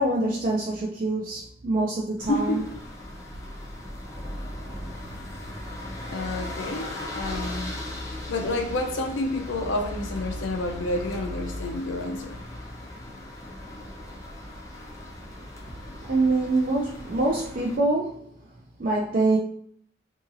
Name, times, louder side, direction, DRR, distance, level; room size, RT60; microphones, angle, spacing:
voice 1, 0.0-2.6 16.1-18.2 18.8-19.4, right 2 dB, 45° right, -2 dB, 0.4 m, -25 dB
sound 1, 2.2-17.8, left 1 dB, 15° left, 0.5 m, -37 dB
voice 2, 2.3-2.7 6.1-7.8 8.3-12.4, left 2 dB, 75° left, 3 dB, 0.5 m, -29 dB
2.8 x 2.7 x 2.5 m, 0.63 s
head